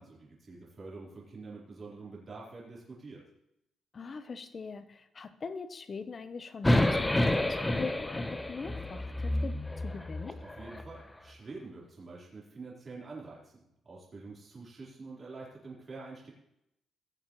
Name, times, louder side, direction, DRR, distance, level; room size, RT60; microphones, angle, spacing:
voice 1, 0.0-3.2 10.4-16.3, right 3 dB, 40° right, -5 dB, 4.0 m, -46 dB
voice 2, 3.9-10.4, left 4 dB, 45° left, 11 dB, 0.9 m, -41 dB
sound 1, 6.6-10.9, left 1 dB, 15° left, 0.9 m, -29 dB
17.0 x 7.2 x 3.2 m, 0.81 s
cardioid pair, 80°, 0 cm